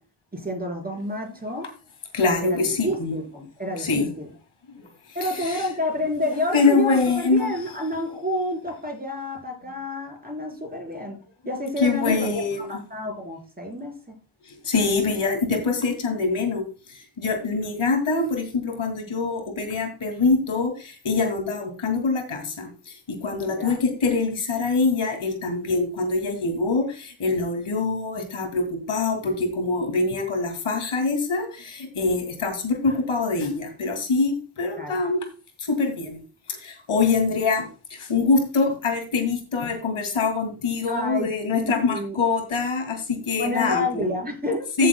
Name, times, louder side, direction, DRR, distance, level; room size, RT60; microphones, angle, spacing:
voice 1, 0.3-1.7 2.4-4.3 5.1-11.2 11.4-14.0 23.5-23.8 34.8-34.9 40.9-42.2 43.4-44.9, left 1 dB, 20° right, 2 dB, 4.5 m, -29 dB
voice 2, 2.1-3.2 3.8-4.1 4.8-4.9 5.2-5.7 6.5-7.6 11.8-12.7 14.6-16.6 16.9-22.9 23.2-35.2 35.6-36.2 36.5-44.1 44.8-44.9, left 4 dB, 90° left, 5 dB, 2.6 m, -24 dB
15.0 x 7.5 x 2.3 m, 0.34 s
wide cardioid pair, 100°, 48 cm